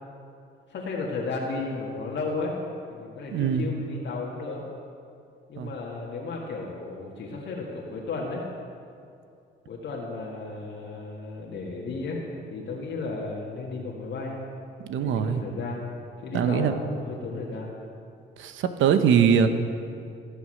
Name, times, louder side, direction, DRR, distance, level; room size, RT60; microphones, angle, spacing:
voice 1, 0.7-2.5 2.9-4.6 5.5-8.4 9.7-12.2 12.5-14.4 15.0-15.8 16.2-17.7, left 3 dB, 65° left, -3 dB, 1.8 m, -34 dB
voice 2, 3.3-3.7 5.6-5.7 14.9-15.4 16.3-16.8 18.4-19.5, right 7 dB, 80° right, 9 dB, 0.9 m, -22 dB
17.5 x 6.8 x 6.5 m, 2.5 s
cardioid pair, 90°, 20 cm